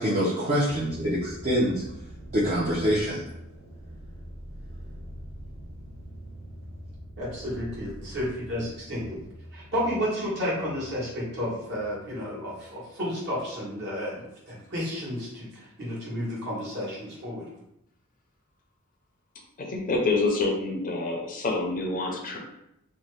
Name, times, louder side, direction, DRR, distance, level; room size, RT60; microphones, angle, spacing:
voice 1, 0.0-1.8 2.3-3.2, equal, 35° right, -8 dB, 0.6 m, -25 dB
sound 1, 0.7-13.7 14.0-14.6, equal, 70° right, 0.8 m, -44 dB
voice 2, 7.2-9.2 9.5-17.4, equal, 55° right, -7 dB, 1.2 m, -32 dB
voice 3, 19.6-22.4, left 3 dB, 40° left, 0 dB, 0.5 m, -27 dB
2.7 x 2.1 x 3.2 m, 0.82 s
head